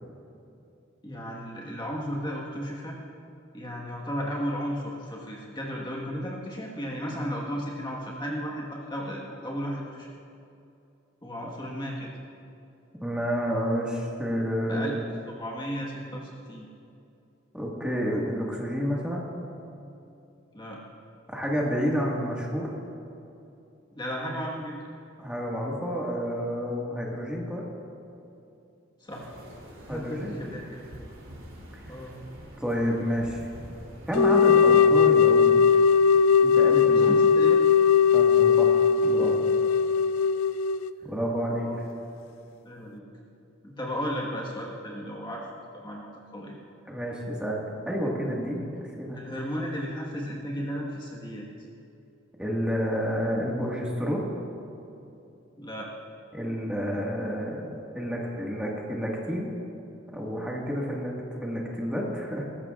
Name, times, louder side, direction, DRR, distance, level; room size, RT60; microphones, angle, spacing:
voice 1, 1.0-3.0 3.5-10.1 11.2-12.1 14.7-14.9 15.4-16.7 20.5-20.8 23.9-24.9 29.0-29.3 29.8-30.8 31.8-32.2 36.9-37.6 41.6-41.8 42.6-43.1 43.6-45.4 45.7-46.6 49.1-51.5 55.6-55.9, equal, 20° left, -3 dB, 1.4 m, -34 dB
voice 2, 13.0-15.1 17.5-19.2 21.3-22.7 25.2-27.7 29.9-30.4 32.6-33.5 34.1-35.6 36.4-37.2 38.1-39.4 41.0-41.7 46.9-48.7 49.0-49.3 52.4-54.3 56.3-59.5 60.1-62.4, equal, 5° right, -3 dB, 1.7 m, -30 dB
sound 1, 29.1-34.8, equal, 75° right, 3.1 m, -46 dB
sound 2, 34.1-40.9, left 6 dB, 90° left, 0.4 m, -19 dB
19.5 x 15.0 x 2.4 m, 2.7 s
head